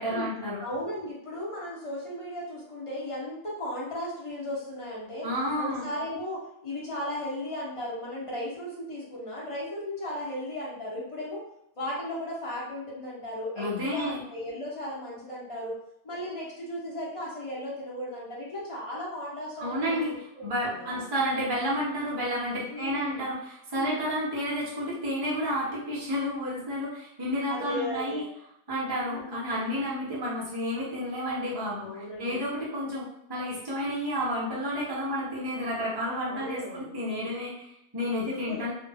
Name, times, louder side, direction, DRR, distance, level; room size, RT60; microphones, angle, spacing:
voice 1, 0.0-0.6 5.2-5.9 13.6-14.2 19.6-20.1 20.4-28.2 28.7-38.7, equal, 35° right, -6 dB, 0.4 m, -31 dB
voice 2, 0.6-5.3 5.6-11.4 11.8-15.7 16.0-21.0 22.7-23.3 23.7-24.0 27.5-28.2 29.1-29.3 31.7-32.4 36.3-36.9 38.3-38.6, left 1 dB, 35° left, -6 dB, 0.6 m, -36 dB
2.3 x 2.1 x 3.3 m, 0.78 s
omnidirectional pair, 1.5 m